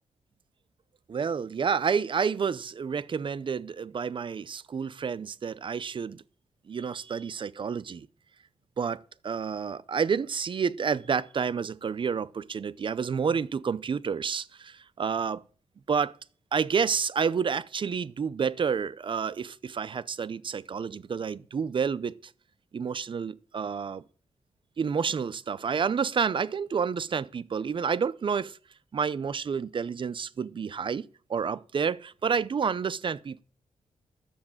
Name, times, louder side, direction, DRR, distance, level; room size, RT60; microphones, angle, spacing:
voice 1, 1.1-6.2 6.7-8.1 8.8-15.4 15.9-16.1 16.5-22.1 22.7-24.0 24.8-28.6 28.9-31.0 31.3-33.4, right 6 dB, 45° right, 0.6 m, -29 dB
9.7 x 7.2 x 8.8 m
wide cardioid pair, 115°, 12 cm